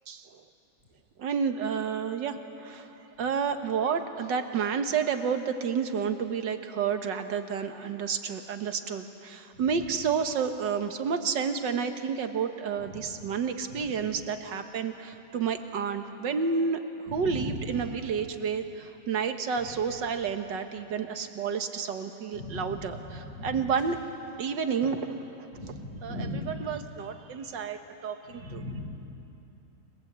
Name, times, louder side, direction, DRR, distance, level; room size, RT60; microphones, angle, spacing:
voice 1, 0.1-0.4 1.2-2.9 3.2-16.8 17.1-24.0 24.4-25.6 26.0-28.6, right 6 dB, 85° right, 7 dB, 2.0 m, -30 dB
voice 2, 17.1-17.8 22.3-23.5 25.5-26.6 28.3-28.8, left 1 dB, 35° left, -5 dB, 7.5 m, -37 dB
29.0 x 21.0 x 8.2 m, 2.9 s
omnidirectional pair, 1.9 m